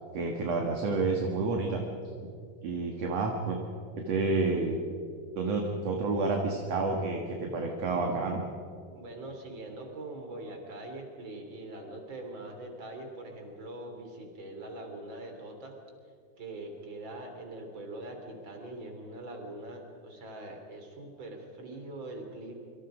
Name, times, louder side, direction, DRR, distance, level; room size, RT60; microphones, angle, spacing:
voice 1, 0.1-1.8 2.6-3.6 4.0-4.8 5.4-8.4, right 3 dB, 50° right, 2 dB, 2.5 m, -29 dB
voice 2, 8.9-15.7 16.4-22.5, right 2 dB, 30° right, 3 dB, 3.9 m, -42 dB
27.5 x 24.5 x 5.2 m, 2.3 s
omnidirectional pair, 4.5 m